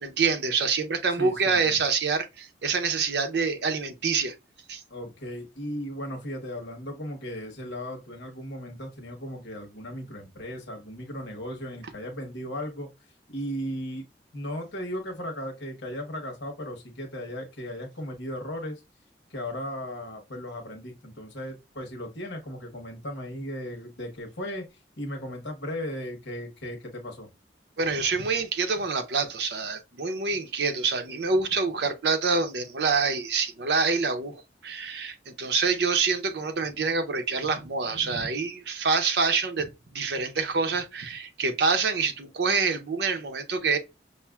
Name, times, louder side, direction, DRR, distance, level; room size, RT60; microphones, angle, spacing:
voice 1, 0.0-4.3 4.7-4.8 27.8-39.7 39.9-43.8, right 4 dB, 70° right, 0.6 m, -26 dB
voice 2, 1.2-1.8 4.9-12.9 13.3-14.0 14.3-18.8 19.3-24.7 25.0-27.3, equal, 90° left, 1.1 m, -36 dB
5.5 x 2.5 x 2.3 m
head